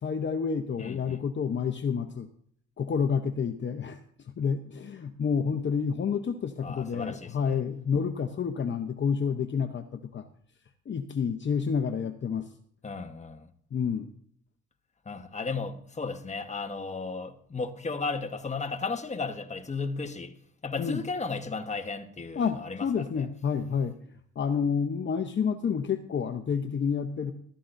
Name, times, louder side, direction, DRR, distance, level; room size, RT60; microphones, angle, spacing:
voice 1, 0.0-2.3 2.8-10.2 10.9-12.5 13.7-14.1 20.8-21.0 22.3-27.3, left 6 dB, 40° left, 0.9 m, -29 dB
voice 2, 0.8-1.2 6.6-7.6 12.8-13.5 15.0-20.3 20.6-22.9 23.2-23.3, left 4 dB, 25° left, 1.2 m, -34 dB
14.0 x 13.0 x 2.6 m
cardioid pair, 90°, 30 cm